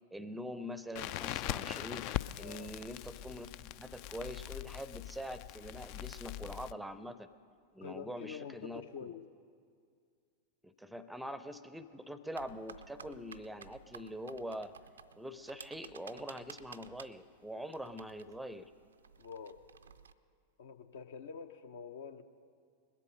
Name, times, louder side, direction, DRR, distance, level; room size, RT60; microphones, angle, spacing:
voice 1, 0.1-2.1 2.4-7.3 7.7-8.8 10.6-14.7 15.2-18.7, equal, 5° right, 14 dB, 0.5 m, -44 dB
Crackle, 1.0-6.7, left 14 dB, 45° left, 0.3 m, -41 dB
voice 2, 7.8-9.2 19.2-19.6 20.6-22.2, left 7 dB, 60° left, 9 dB, 0.7 m, -46 dB
sound 1, 12.3-20.1, right 6 dB, 70° right, 0.4 m, -54 dB
21.0 x 8.3 x 6.5 m, 2.2 s
figure-of-eight pair, 90°, 0 cm